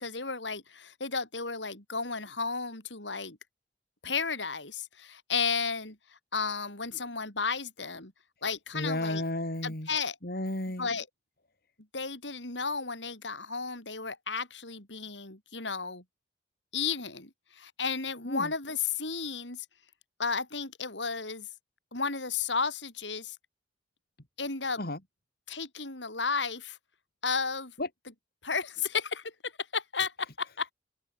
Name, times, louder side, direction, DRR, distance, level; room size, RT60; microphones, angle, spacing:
voice 1, 0.0-3.4 4.0-8.1 8.4-9.2 9.6-10.2 10.8-11.1 11.9-16.0 16.7-19.7 20.2-21.5 21.9-23.4 24.4-24.8 25.5-26.8 27.2-27.7 28.4-30.7, left 5 dB, 80° left, 7.8 m, -33 dB
voice 2, 8.7-9.9 10.2-10.9 18.3-18.5 24.8-25.0 27.8-27.9, left 1 dB, 55° left, 3.9 m, -32 dB
open air
head